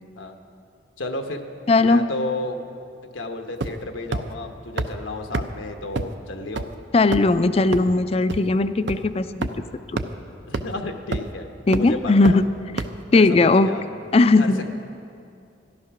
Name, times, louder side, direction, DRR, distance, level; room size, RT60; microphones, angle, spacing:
voice 1, 1.0-1.4 1.8-2.6 3.1-6.7 10.5-11.5 11.8-12.4 13.1-13.8 14.4-14.6, left 2 dB, 90° left, 5 dB, 1.0 m, -32 dB
voice 2, 1.7-2.0 6.9-9.5 11.7-12.4 12.7-12.8 13.1-13.7 14.1-14.6, left 3 dB, 30° left, 12 dB, 0.4 m, -18 dB
sound 1, 3.6-3.9 4.1-4.2 4.8-4.9 5.3-5.4 6.0-6.1 6.6-6.7 7.1-7.3 7.7-7.8 8.3-8.4 8.9-9.0 9.4-9.5 10.0-10.1 10.5-10.6 11.1-11.3 11.7-11.8 12.2-12.3 12.8-12.9, right 3 dB, 65° right, 0.6 m, -25 dB
13.5 x 11.5 x 5.9 m, 2.5 s
head